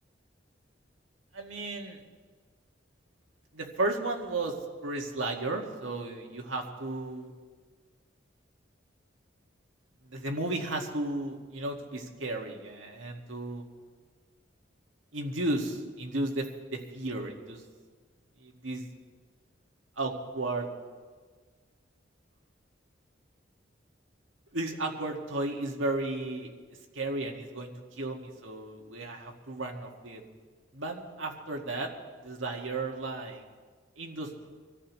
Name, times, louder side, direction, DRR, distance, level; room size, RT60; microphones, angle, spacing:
voice 1, 1.3-2.0 3.5-4.5 4.8-7.3 10.0-13.6 15.1-17.6 18.4-18.8 20.0-20.7 24.5-26.5 26.9-30.2 30.7-31.9 32.2-33.4 34.0-34.5, right 2 dB, 90° right, 1 dB, 2.0 m, -34 dB
25.0 x 14.5 x 3.2 m, 1.5 s
head